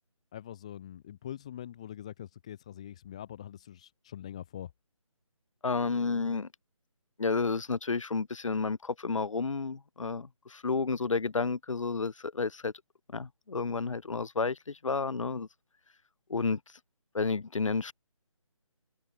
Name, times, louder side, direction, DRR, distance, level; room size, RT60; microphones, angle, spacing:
voice 1, 0.3-4.7, left 10 dB, 10° left, 0.5 m, -43 dB
voice 2, 5.6-6.5 7.2-12.7 13.1-15.5 16.3-16.6 17.1-17.9, left 4 dB, 65° left, 0.8 m, -31 dB
figure-of-eight pair, 155°, 18 cm